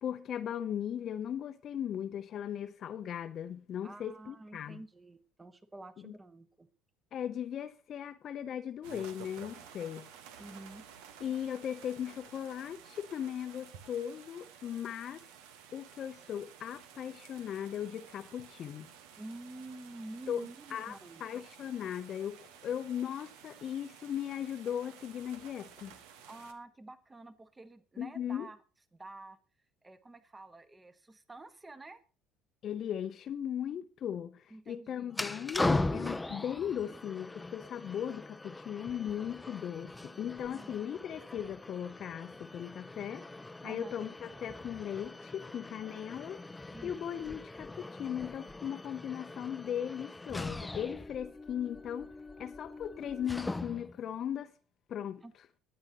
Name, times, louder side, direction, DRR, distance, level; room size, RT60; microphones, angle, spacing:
voice 1, 0.0-4.8 6.0-6.1 7.1-10.1 11.2-15.2 15.7-18.9 20.3-25.9 28.0-28.5 32.6-43.2 43.6-46.4 46.8-52.1 52.4-54.5 54.9-55.2, left 9 dB, 50° left, 0.7 m, -38 dB
voice 2, 3.8-6.7 10.4-10.8 19.2-21.2 26.3-28.6 28.9-29.4 29.8-32.0 34.5-35.2 40.4-40.9 43.6-43.9 46.7-47.0 55.2-55.3, right 2 dB, 20° right, 1.4 m, -49 dB
sound 1, 8.8-26.5, right 8 dB, 70° right, 1.3 m, -54 dB
sound 2, 35.1-54.0, left 2 dB, 10° left, 0.7 m, -40 dB
22.0 x 8.7 x 3.0 m
hypercardioid pair, 65°, 0 cm